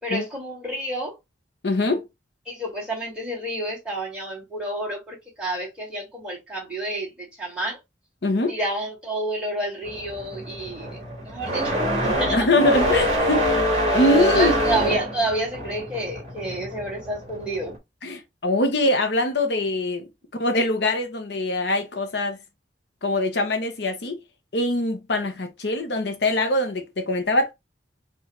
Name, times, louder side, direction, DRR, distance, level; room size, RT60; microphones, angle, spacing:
voice 1, 0.0-1.2 2.5-7.8 8.5-12.4 14.2-17.8, right 1 dB, 5° right, 2.0 m, -29 dB
voice 2, 1.6-2.1 8.2-8.5 12.3-13.5 13.9-14.6 18.0-20.1 20.4-22.4 23.0-24.2 24.5-27.5, left 2 dB, 65° left, 0.8 m, -23 dB
sound 1, 9.8-17.7, equal, 35° right, 1.9 m, -25 dB
4.7 x 2.4 x 3.1 m
head